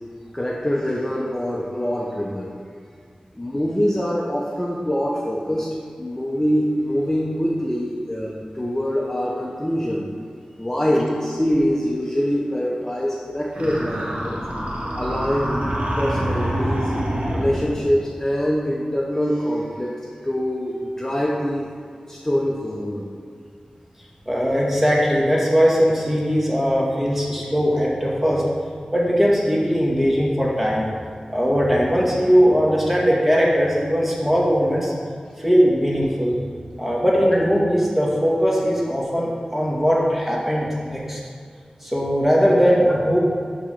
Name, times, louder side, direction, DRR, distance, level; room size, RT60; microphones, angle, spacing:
voice 1, 0.3-2.5 3.3-10.0 10.6-14.4 14.9-16.9 17.3-21.7 22.1-23.1, equal, 20° left, -3 dB, 0.9 m, -24 dB
sound 1, 13.5-17.9, equal, 65° right, 1.5 m, -26 dB
voice 2, 24.3-28.4 28.9-30.8 31.3-34.9 35.4-36.4 36.8-41.2 41.8-43.2, equal, 10° right, -4 dB, 1.9 m, -19 dB
11.0 x 4.0 x 4.5 m, 2.2 s
wide cardioid pair, 55°, 2 cm